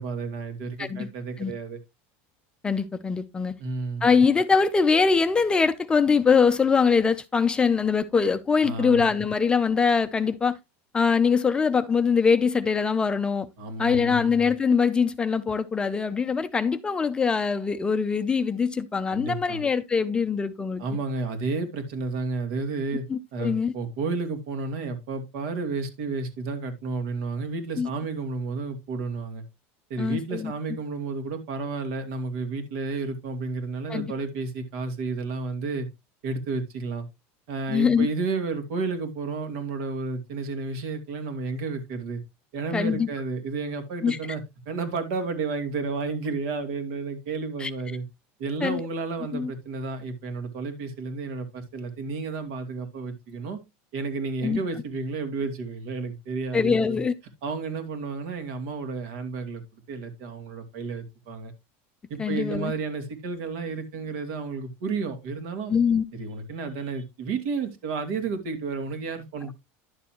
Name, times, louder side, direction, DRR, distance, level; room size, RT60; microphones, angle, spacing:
voice 1, 0.0-1.8 3.6-4.0 8.6-9.1 13.6-14.2 19.1-19.6 20.8-23.0 23.3-29.4 29.9-35.9 36.2-37.1 37.5-42.2 42.5-48.0 48.4-53.6 53.9-57.0 57.4-59.6 59.9-61.5 62.1-65.7 66.1-69.5, right 4 dB, 65° right, 2.5 m, -31 dB
voice 2, 2.6-3.5 4.0-10.6 10.9-13.5 13.8-20.8 23.1-23.7 27.8-27.9 30.0-30.5 33.9-34.1 37.7-38.1 42.7-43.1 44.0-44.2 47.6-47.7 48.6-48.8 49.3-49.5 54.4-54.6 56.5-57.1 62.2-62.7 65.7-66.0, left 5 dB, 15° left, 0.5 m, -23 dB
11.0 x 6.8 x 2.9 m
supercardioid pair, 155°, 7 cm